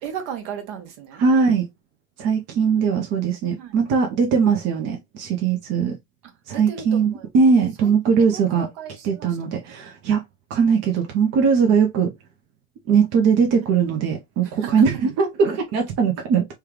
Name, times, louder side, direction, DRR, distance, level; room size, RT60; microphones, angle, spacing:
voice 1, 0.0-1.2 2.5-3.1 3.6-3.8 6.2-7.3 7.8-7.9 8.3-9.6 14.4-14.8, right 8 dB, 55° right, 1.2 m, -36 dB
voice 2, 1.2-1.6 2.2-6.0 6.5-8.7 9.0-10.2 10.5-12.1 12.9-16.5, right 6 dB, 40° right, 0.8 m, -20 dB
3.4 x 2.3 x 3.1 m
hypercardioid pair, 90°, 40 cm